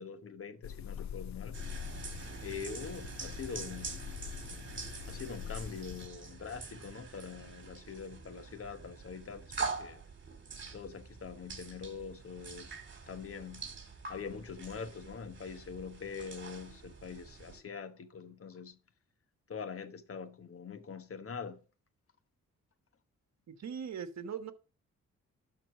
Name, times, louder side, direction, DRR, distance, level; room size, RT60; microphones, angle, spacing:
voice 1, 0.0-1.6 2.4-4.0 5.1-10.0 10.7-12.8 13.1-13.7 14.1-18.8 19.5-21.6, left 6 dB, 45° left, 1.2 m, -44 dB
sound 1, 0.6-6.1, left 9 dB, 65° left, 0.5 m, -44 dB
sound 2, 1.5-17.6, right 4 dB, 40° right, 2.4 m, -45 dB
voice 2, 23.5-24.5, right 7 dB, 60° right, 1.2 m, -40 dB
12.0 x 4.4 x 4.8 m
cardioid pair, 70°, 31 cm